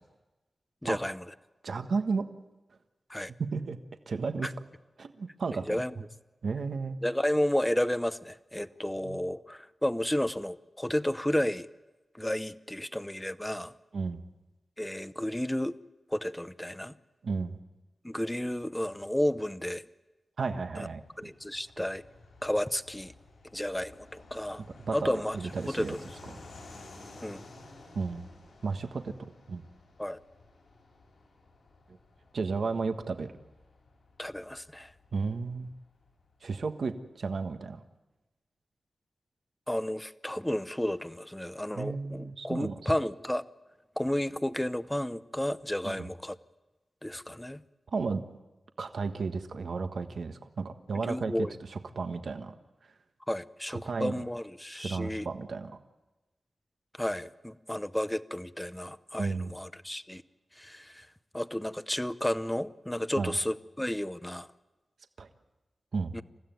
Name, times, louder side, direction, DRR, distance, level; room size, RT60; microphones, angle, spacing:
voice 1, 0.8-1.2 3.1-3.3 4.4-4.5 5.7-5.9 7.0-11.7 12.1-13.7 14.8-15.8 16.1-17.0 18.0-19.8 20.8-20.9 21.2-22.0 22.4-23.1 23.5-24.6 24.9-25.4 25.6-26.0 27.2-27.4 30.0-30.2 34.2-34.9 39.7-43.4 44.0-46.4 47.0-47.6 50.9-51.5 53.3-55.3 57.0-60.2 60.6-61.1 61.3-64.5 66.1-66.2, left 1 dB, 10° left, 13 dB, 0.8 m, -32 dB
voice 2, 1.6-2.3 3.4-3.8 4.1-4.5 5.0-5.8 6.4-7.0 9.0-9.2 13.9-14.2 17.2-17.6 20.4-21.3 24.9-25.9 27.9-28.3 28.6-29.1 29.5-29.6 32.3-33.3 35.1-35.7 36.4-37.8 41.8-42.7 45.8-46.1 47.9-48.2 48.8-52.5 53.7-54.1 54.8-55.8 59.2-59.5 63.2-63.3 65.2-65.3 65.9-66.1, right 4 dB, 70° right, 7 dB, 1.4 m, -33 dB
Fixed-wing aircraft airplane, 20.5-36.7, left 2 dB, 85° left, 7.8 m, -53 dB
28.5 x 15.5 x 9.2 m, 1.1 s
wide cardioid pair, 105°, 0 cm